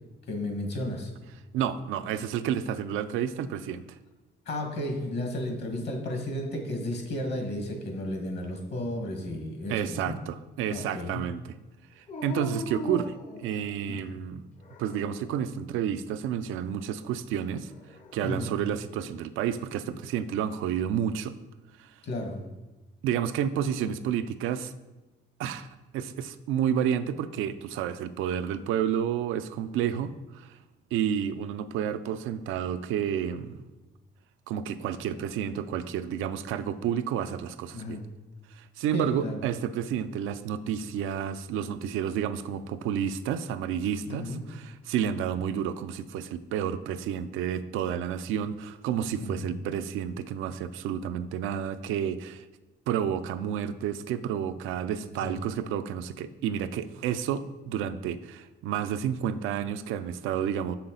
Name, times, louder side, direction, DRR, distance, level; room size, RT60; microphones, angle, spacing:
voice 1, 0.3-1.1 4.4-10.1 10.7-11.2 14.0-14.1 18.2-18.5 22.0-22.4 37.7-38.0 38.9-39.4 44.1-44.4 49.2-49.5 55.0-55.3, left 1 dB, 60° left, 2 dB, 1.6 m, -33 dB
voice 2, 1.5-3.8 9.7-11.4 12.0-14.4 14.8-17.7 18.1-21.4 21.8-21.9 23.0-24.7 25.4-30.5 30.9-33.6 34.5-38.0 38.5-52.4 52.9-60.8, right 9 dB, 90° right, 11 dB, 0.4 m, -30 dB
Dog, 12.1-14.0 14.6-15.4 17.7-18.5, left 3 dB, 40° left, 0.7 m, -39 dB
6.8 x 5.7 x 3.8 m, 1.1 s
cardioid pair, 90°, 20 cm